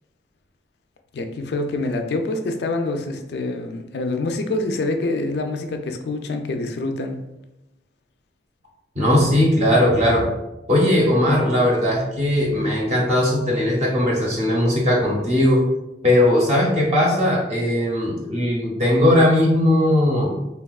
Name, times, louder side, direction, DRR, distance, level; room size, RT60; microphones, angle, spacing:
voice 1, 1.1-7.2, left 2 dB, 65° left, 5 dB, 0.3 m, -26 dB
voice 2, 9.0-10.3 10.7-15.6 16.0-20.4, left 1 dB, 40° right, -3 dB, 0.6 m, -18 dB
3.4 x 2.2 x 2.3 m, 0.94 s
head